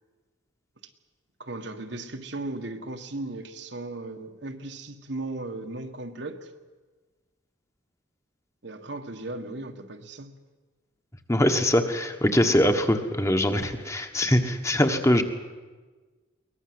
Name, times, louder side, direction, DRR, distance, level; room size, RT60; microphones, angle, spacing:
voice 1, 1.4-6.5 8.6-10.3, right 2 dB, 60° right, 6 dB, 1.7 m, -36 dB
voice 2, 11.3-15.2, left 1 dB, 15° left, 6 dB, 1.4 m, -22 dB
22.5 x 19.5 x 7.9 m, 1.3 s
head